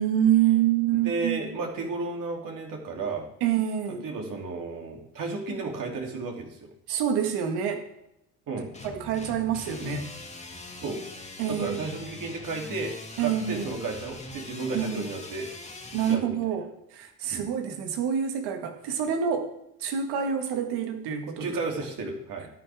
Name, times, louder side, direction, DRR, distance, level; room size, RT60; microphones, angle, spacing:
voice 1, 0.0-1.4 3.4-4.0 6.9-7.8 8.8-10.1 11.4-11.8 13.2-13.7 14.7-15.1 15.9-16.6 16.9-19.5 19.8-21.6, right 9 dB, 80° right, 5 dB, 1.9 m, -26 dB
voice 2, 0.9-3.3 4.0-6.7 8.5-8.7 10.8-11.0 11.5-12.9 13.2-15.5 16.0-16.4 17.3-17.5 21.4-22.5, right 3 dB, 55° right, 0 dB, 3.2 m, -33 dB
sound 1, 8.7-16.2, left 2 dB, 15° left, 2.0 m, -42 dB
13.0 x 9.8 x 3.6 m, 0.82 s
supercardioid pair, 80°, 39 cm